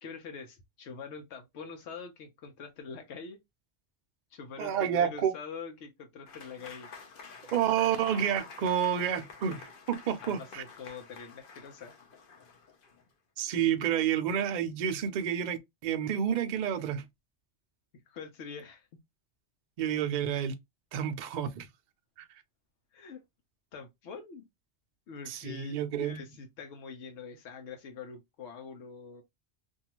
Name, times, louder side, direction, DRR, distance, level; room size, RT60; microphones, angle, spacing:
voice 1, 0.0-3.4 4.3-6.9 7.9-8.6 10.2-11.9 18.1-18.9 22.9-23.2 23.7-24.4 25.1-29.2, left 5 dB, 80° left, 1.0 m, -44 dB
voice 2, 4.6-5.3 7.5-10.6 13.4-17.0 19.8-20.5 20.9-21.7 25.3-26.2, right 9 dB, 55° right, 0.5 m, -29 dB
Applause / Crowd, 6.3-13.1, left 5 dB, 55° left, 0.8 m, -49 dB
2.6 x 2.3 x 2.8 m
omnidirectional pair, 1.2 m